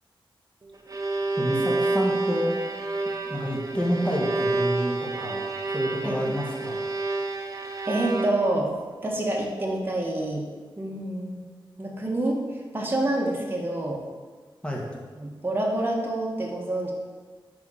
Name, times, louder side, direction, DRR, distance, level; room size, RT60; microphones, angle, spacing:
Bowed string instrument, 0.6-8.7, right 2 dB, 40° right, 0.7 m, -29 dB
voice 1, 1.4-2.7 3.3-5.4 5.7-6.8 14.6-14.9, equal, 10° left, -2 dB, 1.4 m, -28 dB
voice 2, 7.8-8.7 9.0-10.5 10.8-11.4 11.8-14.0 15.2-16.9, right 1 dB, 25° right, -2 dB, 1.2 m, -27 dB
4.8 x 4.7 x 5.6 m, 1.5 s
cardioid pair, 70°, 9 cm